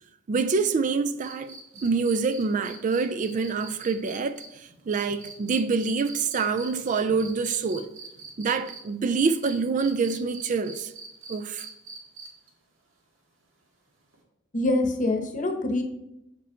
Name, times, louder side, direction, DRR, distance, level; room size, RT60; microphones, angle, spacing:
voice 1, 0.3-7.9 8.4-10.9 11.3-11.7, right 4 dB, 40° right, 0.4 m, -26 dB
sound 1, 1.2-8.8 9.1-12.5 14.1-14.2, right 4 dB, 90° right, 1.8 m, -44 dB
voice 2, 14.5-15.8, left 2 dB, 40° left, 1.0 m, -25 dB
7.6 x 5.1 x 4.4 m
head